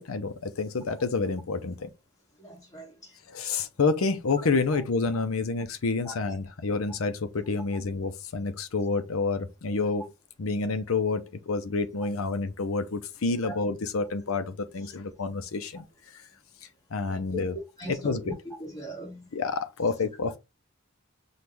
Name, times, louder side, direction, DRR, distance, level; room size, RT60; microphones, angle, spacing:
voice 1, 0.0-1.9 3.3-10.0 10.4-15.8 16.9-17.5 17.9-18.3 19.3-20.4, left 4 dB, 80° left, 0.6 m, -28 dB
voice 2, 2.4-3.1 6.0-6.1 13.4-13.6 17.1-17.4 17.8-19.3, equal, 15° left, 2.0 m, -39 dB
6.0 x 2.4 x 3.3 m
head